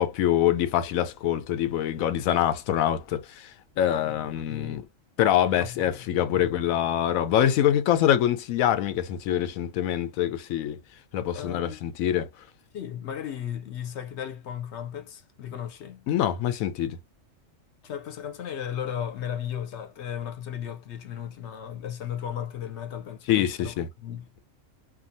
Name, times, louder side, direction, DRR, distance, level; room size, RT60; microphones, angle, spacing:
voice 1, 0.0-3.5 3.8-4.8 5.2-10.8 11.1-12.3 16.1-17.0 23.3-23.9, left 11 dB, 85° left, 1.0 m, -25 dB
voice 2, 4.5-4.9 5.6-6.1 6.3-6.5 11.3-11.8 12.7-16.0 17.8-24.3, left 9 dB, 65° left, 0.9 m, -35 dB
2.7 x 2.3 x 2.6 m
omnidirectional pair, 1.4 m